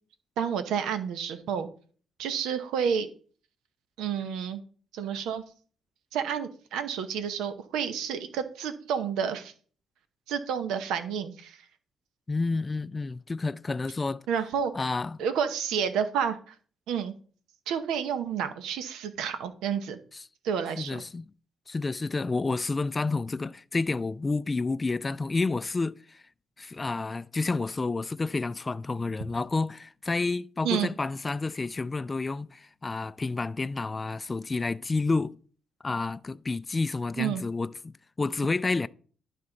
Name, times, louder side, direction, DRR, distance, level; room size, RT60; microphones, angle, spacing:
voice 1, 0.4-1.7 2.2-3.1 4.0-4.6 4.9-5.4 6.1-9.5 10.3-11.6 14.3-14.7 15.2-16.5 16.9-17.1 17.7-20.0 20.4-21.0 30.6-30.9 37.2-37.4, right 7 dB, 90° right, 0.8 m, -30 dB
voice 2, 12.3-14.2 14.7-15.2 20.8-21.2 21.7-26.2 26.6-35.4 35.8-38.9, left 3 dB, 25° left, 0.3 m, -30 dB
11.5 x 4.2 x 3.9 m
cardioid pair, 90°, 0 cm